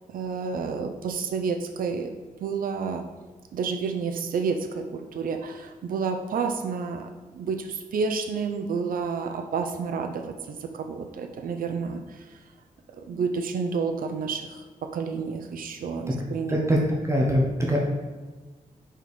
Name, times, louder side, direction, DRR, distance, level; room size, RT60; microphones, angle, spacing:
voice 1, 0.1-2.1 2.4-3.1 3.5-12.4 12.9-16.6, right 5 dB, 75° right, 5 dB, 0.5 m, -30 dB
voice 2, 16.5-16.8 17.0-17.8, equal, 20° right, -2 dB, 0.9 m, -23 dB
5.1 x 4.3 x 4.8 m, 1.3 s
wide cardioid pair, 130°, 15 cm